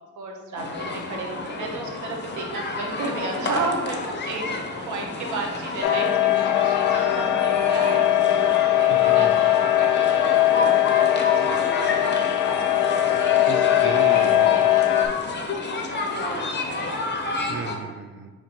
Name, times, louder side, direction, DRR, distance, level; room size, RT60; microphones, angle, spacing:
voice 1, 0.2-4.0 4.3-4.4 4.9-12.0 12.6-13.8 14.1-17.0 17.3-17.6, right 3 dB, 75° right, 2 dB, 0.9 m, -34 dB
sound 1, 0.6-17.8, left 3 dB, 35° left, 0.6 m, -30 dB
sound 2, 5.8-15.1, left 12 dB, 85° left, 0.5 m, -20 dB
voice 2, 8.9-9.4 13.4-14.6 17.5-18.3, right 6 dB, 40° right, 9 dB, 0.4 m, -34 dB
6.3 x 2.9 x 2.9 m, 1.4 s
cardioid pair, 90°, 30 cm